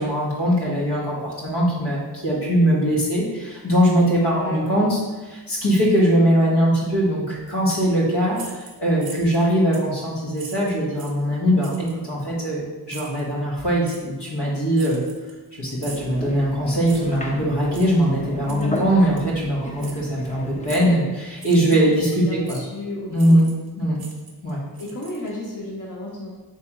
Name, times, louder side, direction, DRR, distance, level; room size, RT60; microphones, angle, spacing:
voice 1, 0.0-5.0 5.3-15.0 15.6-22.6 23.1-23.4 23.7-24.0 24.4-24.6, equal, 80° left, -5 dB, 1.3 m, -21 dB
voice 2, 4.3-4.9 18.5-18.8 21.5-21.8 22.2-23.4 24.8-26.4, left 2 dB, 50° left, -4 dB, 0.8 m, -33 dB
sound 1, 8.3-9.4 9.7-9.9 10.3-11.2 11.6-12.0 12.9-13.2 13.8-14.0 14.7-15.5 15.8-16.1 16.8-17.2 17.7-17.9 18.5-18.8 19.2-19.3 19.8-20.0 20.6-21.0 21.3-22.0 22.5-22.6 23.1-23.7 23.9-25.5, right 4 dB, 60° right, 0.7 m, -41 dB
sound 2, 15.8-20.9, left 1 dB, 20° left, 0.6 m, -34 dB
3.4 x 3.0 x 4.6 m, 1.2 s
wide cardioid pair, 60°, 40 cm